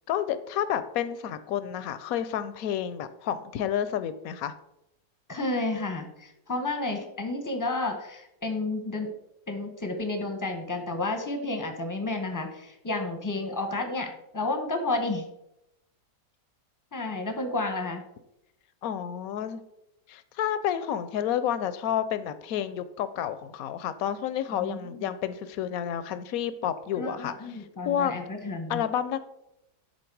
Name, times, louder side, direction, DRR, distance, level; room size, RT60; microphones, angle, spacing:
voice 1, 0.1-4.5 18.8-19.6 20.1-27.3 27.8-28.1 28.7-29.2, left 9 dB, 75° left, 13 dB, 0.8 m, -30 dB
voice 2, 5.3-9.1 9.5-15.2 16.9-18.0 24.6-25.1 26.9-28.8, left 2 dB, 25° left, 5 dB, 0.4 m, -31 dB
10.5 x 4.1 x 4.6 m, 0.86 s
omnidirectional pair, 1.9 m